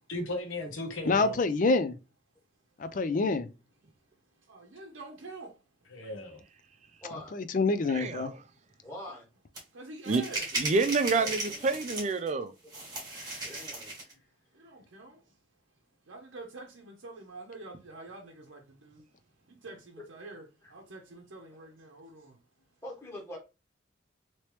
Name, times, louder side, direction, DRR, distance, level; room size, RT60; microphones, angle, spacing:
voice 1, 0.1-1.4 5.9-6.4, left 1 dB, 85° left, 0.8 m, -36 dB
voice 2, 1.0-2.0 2.8-3.5 7.3-8.3, left 3 dB, 40° left, 0.4 m, -26 dB
voice 3, 4.3-5.7 9.1-9.2 9.7-10.6 14.5-15.4 16.0-19.1 19.5-22.4, right 2 dB, 80° right, 0.7 m, -47 dB
voice 4, 7.0-7.3 8.8-9.3 11.1-11.7 13.1-14.2 22.8-23.4, equal, 15° left, 1.3 m, -44 dB
voice 5, 7.9-8.3 10.1-10.2 10.6-12.5, right 4 dB, 35° right, 0.4 m, -28 dB
sound 1, 9.6-9.7 10.0-12.3 12.7-14.1, right 2 dB, 20° right, 1.4 m, -36 dB
3.0 x 2.9 x 3.1 m
head